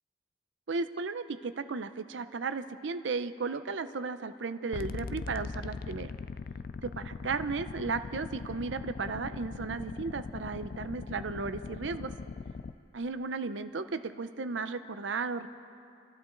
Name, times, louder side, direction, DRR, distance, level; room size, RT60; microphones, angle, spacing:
voice 1, 0.7-6.1 6.8-12.1 12.9-15.5, right 4 dB, 75° right, 11 dB, 0.6 m, -35 dB
sound 1, 4.7-12.7, left 4 dB, 50° left, 0.4 m, -40 dB
29.0 x 12.5 x 3.9 m, 2.6 s
head